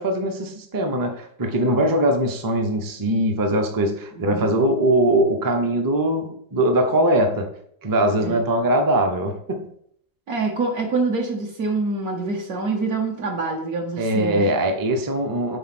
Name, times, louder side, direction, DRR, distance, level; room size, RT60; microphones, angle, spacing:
voice 1, 0.0-7.5 7.8-9.6 14.0-15.6, right 1 dB, 25° right, 5 dB, 0.4 m, -21 dB
voice 2, 4.1-4.5 8.2-8.4 10.3-14.5, right 3 dB, 65° right, 0 dB, 1.5 m, -26 dB
5.5 x 4.2 x 5.9 m, 0.66 s
omnidirectional pair, 1.7 m